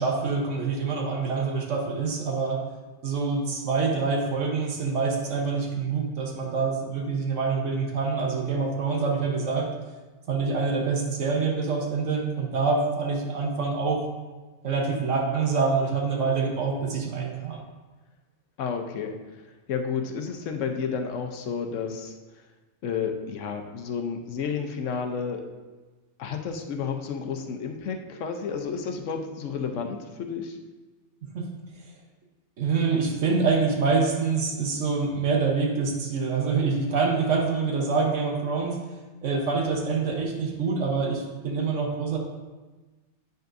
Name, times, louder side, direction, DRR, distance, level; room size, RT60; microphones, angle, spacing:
voice 1, 0.0-2.6 3.0-9.7 10.3-14.1 14.6-17.6 31.3-31.4 32.6-38.8 39.2-42.2, right 4 dB, 80° right, 1 dB, 1.3 m, -26 dB
voice 2, 18.6-19.1 19.7-22.2 22.8-25.4 26.2-30.6, left 6 dB, 80° left, 4 dB, 1.0 m, -31 dB
8.8 x 5.3 x 2.6 m, 1.2 s
omnidirectional pair, 1.3 m